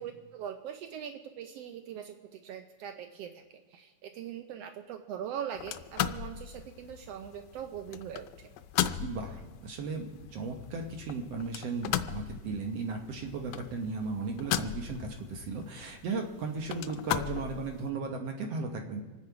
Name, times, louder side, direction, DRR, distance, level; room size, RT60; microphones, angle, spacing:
voice 1, 0.0-8.5, right 9 dB, 90° right, 7 dB, 1.3 m, -41 dB
sound 1, 5.6-17.9, left 11 dB, 75° left, 1.8 m, -37 dB
voice 2, 9.0-19.0, right 4 dB, 60° right, 3 dB, 1.9 m, -36 dB
26.5 x 9.9 x 4.7 m, 1.3 s
omnidirectional pair, 3.6 m